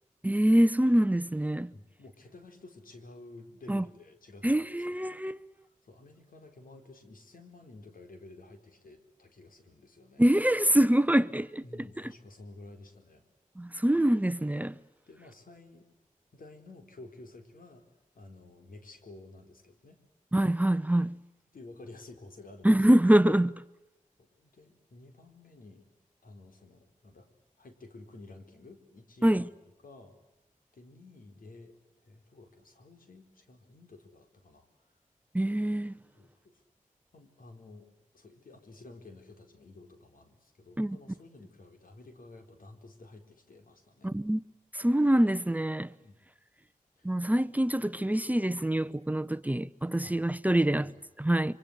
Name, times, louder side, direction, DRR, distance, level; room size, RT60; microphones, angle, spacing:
voice 1, 0.2-1.7 3.7-3.8 4.4-5.4 10.2-11.6 13.6-14.8 20.3-21.2 22.6-23.5 29.2-29.5 35.3-35.9 40.8-41.0 44.0-44.4 44.7-45.9 47.0-50.9 51.2-51.5, right 1 dB, 10° right, 0.9 m, -25 dB
voice 2, 1.7-4.9 5.8-10.3 11.6-13.2 15.1-15.9 16.3-17.8 18.1-20.0 21.5-22.8 24.2-25.8 26.2-27.3 27.6-29.4 29.8-30.2 30.7-31.7 32.0-34.7 36.1-36.6 37.1-37.9 38.1-44.1 46.0-46.2 47.0-47.3 50.0-50.2 50.7-51.1, left 2 dB, 85° left, 4.4 m, -52 dB
27.0 x 25.0 x 8.1 m
wide cardioid pair, 60°, 14 cm